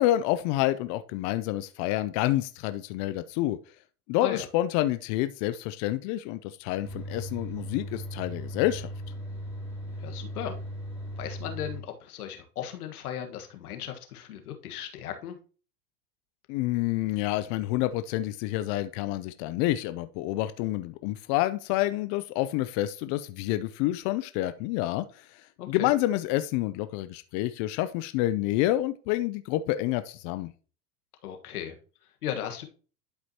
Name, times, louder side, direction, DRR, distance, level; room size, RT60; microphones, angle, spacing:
voice 1, 0.0-3.6 4.1-8.9 16.5-25.4 25.7-30.5, left 15 dB, 45° left, 12 dB, 0.5 m, -28 dB
sound 1, 6.8-11.8, equal, 5° right, 3.6 m, -38 dB
voice 2, 10.0-10.6 11.2-15.4 25.6-25.9 31.2-32.7, left 10 dB, 80° left, 6 dB, 1.5 m, -37 dB
11.5 x 4.9 x 2.9 m, 0.38 s
hypercardioid pair, 105°, 44 cm